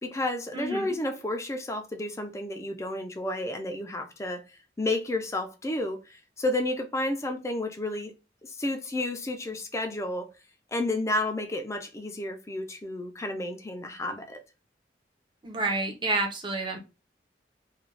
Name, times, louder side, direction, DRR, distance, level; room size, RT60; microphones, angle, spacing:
voice 1, 0.0-4.4 4.8-8.1 8.4-10.3 10.7-14.4, left 1 dB, 15° left, 0.4 m, -31 dB
voice 2, 0.5-0.9 15.4-16.8, right 2 dB, 25° right, 0.6 m, -29 dB
2.4 x 2.2 x 3.1 m
head